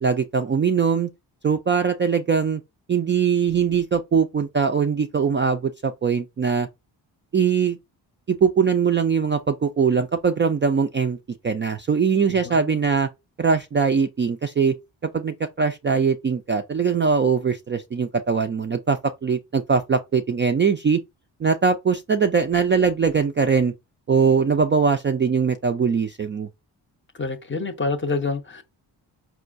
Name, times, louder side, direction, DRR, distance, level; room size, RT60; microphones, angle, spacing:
voice 1, 0.0-1.1 1.4-2.6 2.9-6.7 7.3-7.8 8.3-11.2 11.4-13.1 13.4-14.7 15.1-21.0 21.4-23.7 24.1-26.5, right 6 dB, 25° right, 0.3 m, -21 dB
voice 2, 12.3-12.8 27.2-28.6, left 3 dB, 25° left, 0.6 m, -28 dB
4.5 x 2.1 x 2.5 m
supercardioid pair, 45°, 46 cm